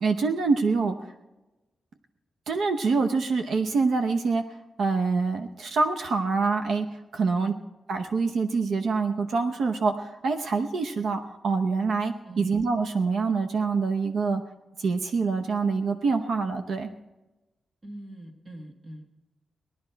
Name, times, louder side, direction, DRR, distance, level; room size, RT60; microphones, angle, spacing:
voice 1, 0.0-1.0 2.5-4.4 4.8-6.9 7.1-7.5 7.9-14.4 14.8-16.9, right 4 dB, 75° right, 5 dB, 0.8 m, -25 dB
voice 2, 12.2-12.6 17.8-19.1, right 1 dB, 25° right, 4 dB, 1.5 m, -43 dB
18.5 x 12.0 x 4.5 m, 1.1 s
wide cardioid pair, 180°, 0 cm